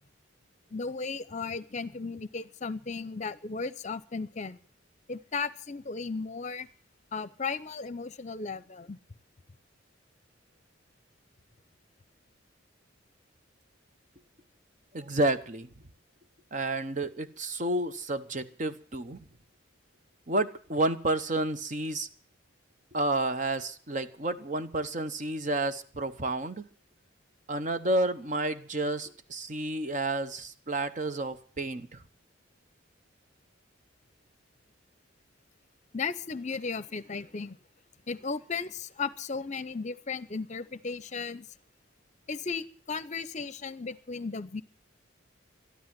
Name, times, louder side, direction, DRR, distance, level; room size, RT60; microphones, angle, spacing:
voice 1, 0.7-4.6 5.1-6.7 7.1-9.0 35.9-37.6 38.1-41.5 42.3-44.6, left 4 dB, 35° left, 0.7 m, -35 dB
voice 2, 14.9-15.7 16.5-19.2 20.3-22.1 22.9-26.7 27.5-32.0, right 2 dB, 40° right, 0.9 m, -30 dB
13.0 x 12.5 x 7.6 m
head